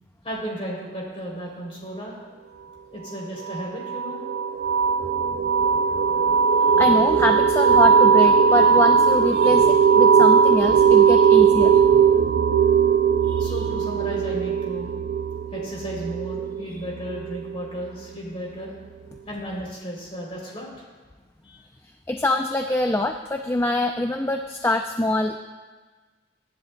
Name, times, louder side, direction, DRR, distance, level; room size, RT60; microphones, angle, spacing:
voice 1, 0.2-2.2 2.9-4.2 13.3-14.9 15.5-18.7 19.3-20.7 21.4-21.6, equal, 30° left, -3 dB, 3.3 m, -34 dB
sound 1, 3.4-17.9, right 6 dB, 60° right, 0.4 m, -18 dB
voice 2, 5.9-12.3 13.2-13.6 21.8-25.4, left 1 dB, 10° left, 5 dB, 0.3 m, -25 dB
22.5 x 10.5 x 2.3 m, 1.4 s
head